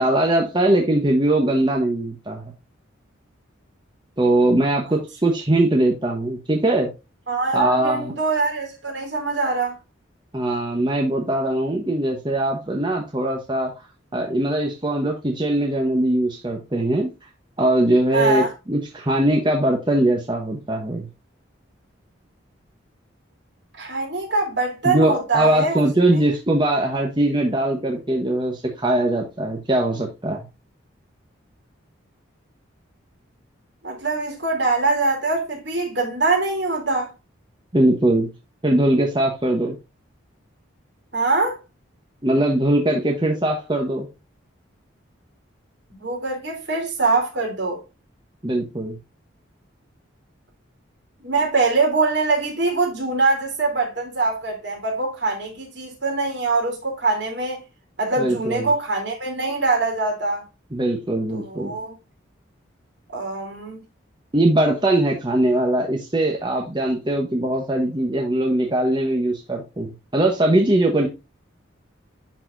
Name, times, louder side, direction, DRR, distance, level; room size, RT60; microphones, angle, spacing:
voice 1, 0.0-2.5 4.2-6.9 7.5-8.1 10.3-13.8 14.1-17.1 17.6-21.1 24.8-30.5 37.7-38.3 38.6-39.8 42.2-44.1 48.4-49.0 58.2-58.7 60.7-61.7 64.3-71.1, right 1 dB, 25° right, 1.0 m, -21 dB
voice 2, 7.3-9.8 18.1-18.5 23.8-25.8 33.8-37.1 41.1-41.6 46.0-47.8 51.2-57.6 58.0-60.4 61.3-61.9 63.1-63.8, right 3 dB, 60° right, 3.1 m, -23 dB
10.5 x 4.2 x 2.5 m
head